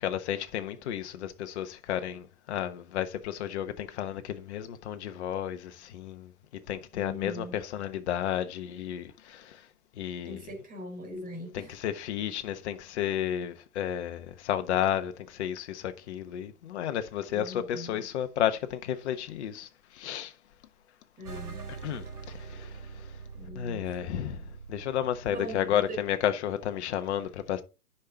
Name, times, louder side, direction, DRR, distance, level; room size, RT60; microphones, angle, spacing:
voice 1, 0.0-6.3 6.7-7.5 7.7-9.6 10.0-10.4 11.5-19.7 20.0-20.3 21.8-22.7 23.5-24.4 24.7-27.6, left 10 dB, 50° left, 1.2 m, -32 dB
voice 2, 6.9-7.6 10.2-11.8 17.3-18.1 21.2-21.6 23.3-23.9 25.3-26.1, equal, 20° right, 3.7 m, -41 dB
sound 1, 21.3-26.1, right 5 dB, 80° right, 3.3 m, -44 dB
10.0 x 5.8 x 3.7 m
figure-of-eight pair, 115°, 44 cm